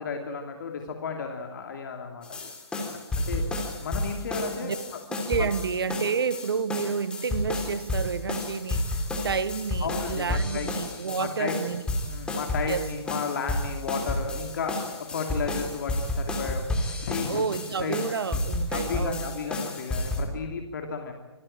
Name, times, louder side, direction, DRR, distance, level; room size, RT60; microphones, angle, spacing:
voice 1, 0.0-2.5 3.2-3.4 3.8-4.8 5.4-5.5 9.8-10.7 11.2-11.6 12.1-16.6 17.0-17.4 17.8-18.0 18.3-18.4 18.7-21.1, left 5 dB, 45° left, 2.8 m, -33 dB
sound 1, 2.2-20.2, left 1 dB, 5° left, 3.0 m, -31 dB
voice 2, 5.3-11.8 12.7-12.9 17.3-19.4, right 6 dB, 60° right, 1.5 m, -30 dB
25.5 x 15.0 x 8.8 m
figure-of-eight pair, 135°, 14 cm